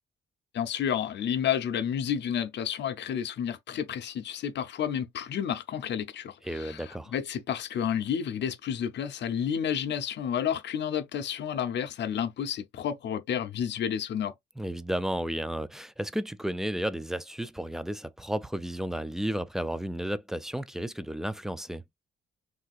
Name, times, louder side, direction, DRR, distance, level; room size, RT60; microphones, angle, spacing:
voice 1, 0.5-14.3, left 8 dB, 60° left, 0.7 m, -31 dB
voice 2, 6.4-7.1 14.6-21.8, right 1 dB, ahead, 0.3 m, -33 dB
3.4 x 2.5 x 2.4 m
cardioid pair, 90°, 20 cm